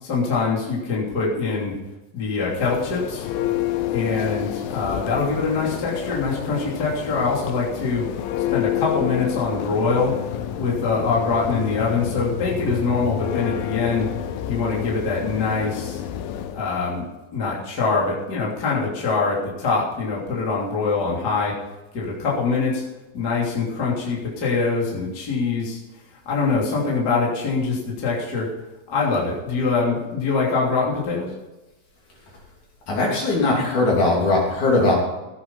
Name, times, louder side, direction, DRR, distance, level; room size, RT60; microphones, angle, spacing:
voice 1, 0.0-1.7 2.1-3.3 3.8-8.1 8.5-10.2 10.6-14.1 14.4-16.0 16.5-17.0 17.3-21.5 21.9-22.8 23.1-25.8 26.2-28.5 28.9-31.3, left 4 dB, 30° left, -5 dB, 3.3 m, -24 dB
Church bell, 2.4-16.7, left 11 dB, 85° left, 2.5 m, -29 dB
voice 2, 32.9-35.0, left 2 dB, 55° left, -3 dB, 4.6 m, -19 dB
16.0 x 8.7 x 5.5 m, 1.0 s
omnidirectional pair, 4.1 m